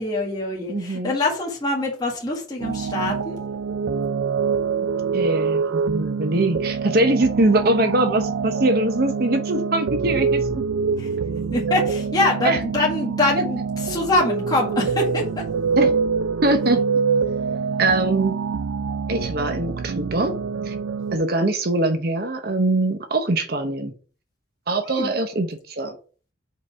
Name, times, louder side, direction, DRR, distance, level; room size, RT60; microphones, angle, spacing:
voice 1, 0.0-3.4 11.0-11.1 11.5-15.5 24.8-25.1, left 2 dB, 20° left, -2 dB, 1.6 m, -24 dB
voice 2, 0.7-1.1 5.1-10.6 12.4-12.6 15.8-15.9 16.4-16.8 17.8-18.4 19.1-20.3 20.6-20.7 21.1-23.9 24.7-25.9, right 2 dB, 50° right, 6 dB, 0.9 m, -22 dB
sound 1, 2.6-21.2, right 5 dB, 80° right, 0.4 m, -25 dB
5.2 x 3.9 x 5.7 m, 0.39 s
head